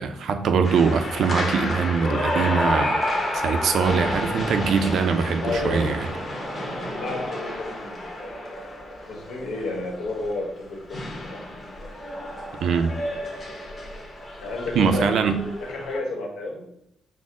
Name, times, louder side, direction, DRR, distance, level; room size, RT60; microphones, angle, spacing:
voice 1, 0.0-3.0 3.3-6.1 12.6-13.0 14.8-15.4, right 5 dB, 60° right, 8 dB, 0.4 m, -22 dB
sound 1, 0.6-16.0, left 1 dB, 20° left, 0.9 m, -30 dB
voice 2, 5.4-6.0 6.6-8.3 9.0-11.0 11.3-11.5 14.4-15.2 15.6-16.7, left 2 dB, 80° left, 0 dB, 1.2 m, -31 dB
6.2 x 2.1 x 3.6 m, 0.78 s
cardioid pair, 170°, 0 cm